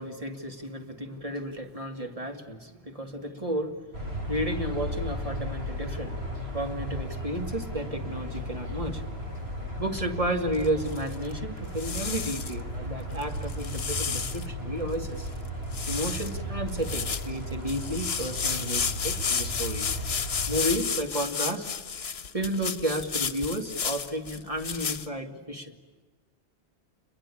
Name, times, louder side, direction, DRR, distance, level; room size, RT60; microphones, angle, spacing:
voice 1, 0.0-6.2 6.5-9.0 9.8-15.3 15.9-19.8 20.5-21.7 22.3-25.7, right 1 dB, 30° right, 4 dB, 2.6 m, -32 dB
sound 1, 3.9-20.6, equal, 70° right, 6.1 m, -35 dB
sound 2, 10.5-11.3 11.8-12.6 13.2-14.5 14.9-15.0 15.2-15.5 15.7-16.4 16.7-25.1, left 6 dB, 65° left, 1.3 m, -32 dB
30.0 x 22.5 x 8.7 m, 1.3 s
omnidirectional pair, 1.1 m